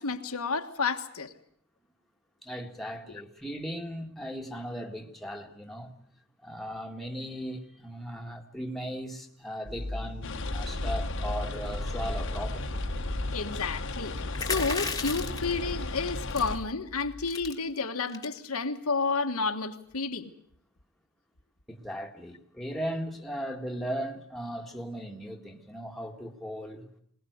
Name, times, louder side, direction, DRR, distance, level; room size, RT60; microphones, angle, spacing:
voice 1, 0.0-1.3 13.3-20.3, left 4 dB, 80° left, 5 dB, 1.5 m, -31 dB
voice 2, 2.4-5.9 6.4-12.8 21.7-26.9, equal, ahead, 1 dB, 1.7 m, -37 dB
sound 1, 9.7-17.5, left 1 dB, 55° right, 3.0 m, -38 dB
sound 2, 10.2-16.6, left 2 dB, 60° left, 1.3 m, -36 dB
sound 3, 14.3-15.5 16.3-16.6 17.0-17.1 17.3-17.5 18.1-18.4, left 5 dB, 15° left, 1.5 m, -33 dB
21.0 x 20.0 x 7.9 m, 0.66 s
head